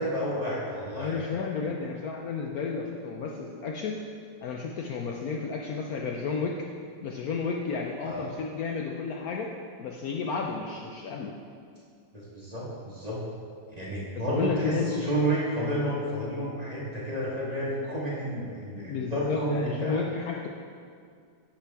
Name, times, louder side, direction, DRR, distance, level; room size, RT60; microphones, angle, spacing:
voice 1, 0.0-1.2 8.0-8.3 12.1-13.2 13.8-20.0, right 1 dB, 25° right, -6 dB, 1.2 m, -31 dB
voice 2, 1.0-4.0 4.4-6.5 7.0-9.5 9.8-11.3 14.1-15.0 18.9-20.5, left 5 dB, 70° left, 0 dB, 0.9 m, -32 dB
9.7 x 5.9 x 3.4 m, 2.2 s
omnidirectional pair, 1.9 m